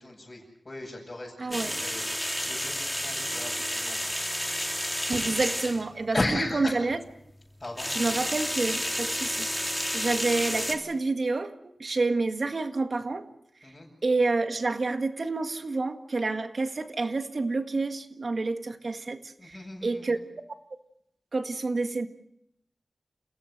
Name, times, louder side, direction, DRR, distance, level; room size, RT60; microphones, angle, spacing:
voice 1, 0.0-4.1 6.1-6.8 7.6-8.2 13.6-13.9 19.4-20.2, left 1 dB, 35° left, -6 dB, 7.8 m, -35 dB
voice 2, 1.4-1.8 5.1-7.0 7.9-13.2 14.0-19.6 19.8-20.2 21.3-22.1, right 3 dB, 60° right, 7 dB, 1.8 m, -29 dB
sound 1, 1.5-5.8 7.6-10.7, equal, 5° left, 3.0 m, -31 dB
29.0 x 17.0 x 6.7 m, 0.77 s
wide cardioid pair, 60°, 0 cm